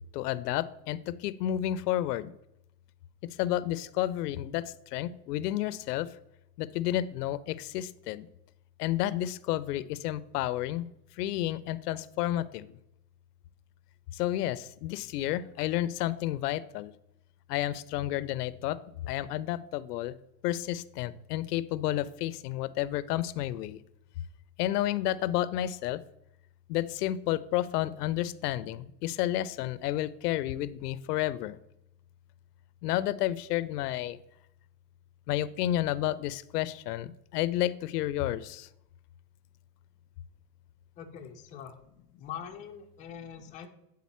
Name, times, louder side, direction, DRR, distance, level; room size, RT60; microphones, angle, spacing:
voice 1, 0.1-2.3 3.4-4.6 4.9-6.1 6.6-8.3 8.8-10.8 11.2-12.7 14.2-16.9 17.5-18.8 19.1-20.1 20.4-23.8 24.6-26.0 26.7-31.6 32.8-34.2 35.3-38.7, left 13 dB, 90° left, 17 dB, 0.5 m, -31 dB
voice 2, 41.0-41.8 42.2-43.7, left 8 dB, 15° left, 2 dB, 0.4 m, -43 dB
8.4 x 3.9 x 4.2 m, 0.83 s
supercardioid pair, 145°, 45 cm